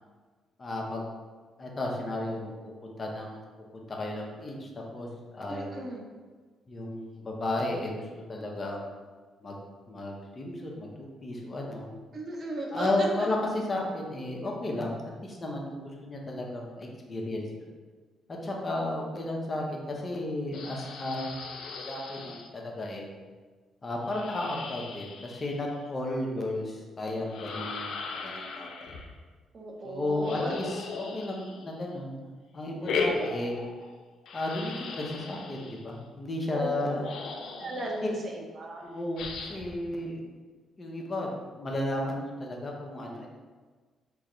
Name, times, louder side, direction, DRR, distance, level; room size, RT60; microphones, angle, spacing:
voice 1, 0.6-1.0 1.6-3.4 3.7-5.1 5.3-5.7 6.7-8.8 9.4-9.6 9.9-11.9 12.7-14.9 15.2-17.7 18.4-21.3 21.8-23.1 23.8-29.0 29.8-33.5 34.3-37.0 38.8-40.2 40.8-43.3, left 1 dB, 30° left, -1 dB, 0.8 m, -33 dB
voice 2, 5.5-6.1 12.1-13.3 29.5-30.5 33.1-33.2 36.5-37.0 37.6-38.9, right 1 dB, 45° right, -1 dB, 0.8 m, -36 dB
sound 1, 20.5-22.5 24.1-25.9 27.3-29.1 30.2-31.9 32.8-34.0 34.3-35.8 36.8-36.9 37.0-38.1 39.2-39.8, left 4 dB, 75° left, 0.4 m, -37 dB
4.5 x 2.2 x 3.8 m, 1.4 s
cardioid pair, 90°, 0 cm